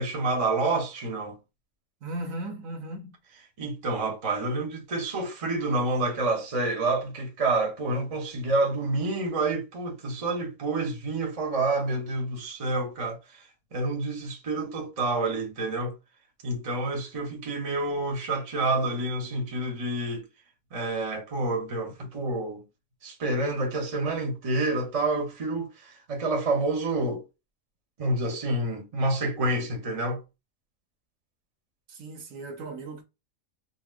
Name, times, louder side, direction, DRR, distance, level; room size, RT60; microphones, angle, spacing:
voice 1, 0.0-1.4 3.6-13.4 13.7-16.0 16.4-20.2 20.7-22.6 23.0-27.2 28.0-30.2, right 2 dB, 30° right, 0.7 m, -28 dB
voice 2, 2.0-3.2 31.9-33.0, right 2 dB, 70° right, 1.0 m, -37 dB
4.1 x 2.0 x 2.4 m
omnidirectional pair, 1.5 m